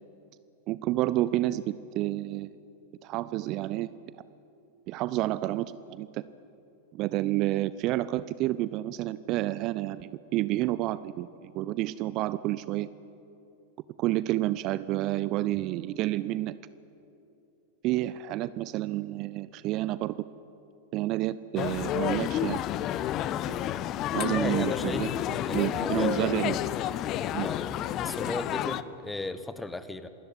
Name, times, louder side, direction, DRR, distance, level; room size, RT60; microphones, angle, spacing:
voice 1, 0.7-2.5 3.0-3.9 4.9-6.2 6.9-12.9 14.0-16.5 17.8-20.2 20.9-22.6 23.5-23.6 24.1-25.1 25.5-26.6 27.3-27.5, right 16 dB, 40° right, 17 dB, 0.5 m, -29 dB
sound 1, 21.6-28.8, left 12 dB, 35° left, 0.7 m, -30 dB
voice 2, 24.2-26.3 27.4-30.1, left 2 dB, 10° left, 12 dB, 1.2 m, -36 dB
26.5 x 13.5 x 9.7 m, 2.8 s
figure-of-eight pair, 90°, 0 cm